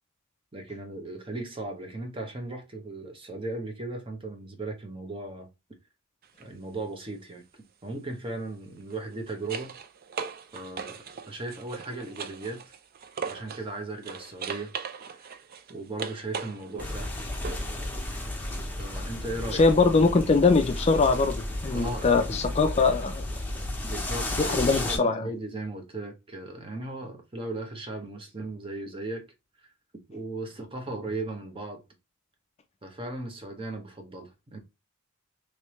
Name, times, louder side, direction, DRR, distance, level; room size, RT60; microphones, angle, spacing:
voice 1, 0.5-5.5 6.4-9.7 10.5-12.6 13.3-14.7 15.0-15.2 15.7-17.1 18.8-19.6 21.7-22.4 23.9-29.3 30.1-31.8 32.8-34.6, right 2 dB, 25° right, 0.8 m, -37 dB
sound 1, 6.2-6.5 8.8-13.7 14.0-17.8 20.4-20.5, right 6 dB, 45° right, 0.4 m, -39 dB
sound 2, 16.8-25.0, left 1 dB, 10° left, 0.7 m, -33 dB
voice 2, 19.5-23.2 24.4-25.3, left 4 dB, 30° left, 0.3 m, -22 dB
3.2 x 3.2 x 2.9 m
head